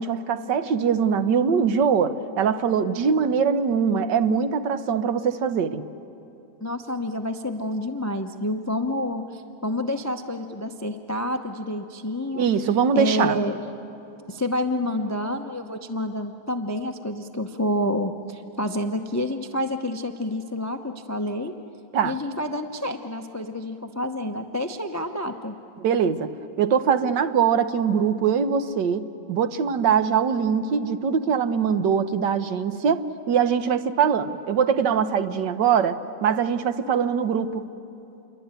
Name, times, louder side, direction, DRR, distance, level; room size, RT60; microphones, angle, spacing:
voice 1, 0.0-5.8 12.3-13.4 21.9-22.2 25.8-26.3 26.6-37.7, right 7 dB, 65° right, 10 dB, 1.5 m, -22 dB
voice 2, 6.6-12.5 12.9-13.6 14.3-21.5 22.0-25.5, left 1 dB, 25° left, 6 dB, 0.3 m, -28 dB
28.0 x 23.0 x 9.0 m, 2.8 s
omnidirectional pair, 2.1 m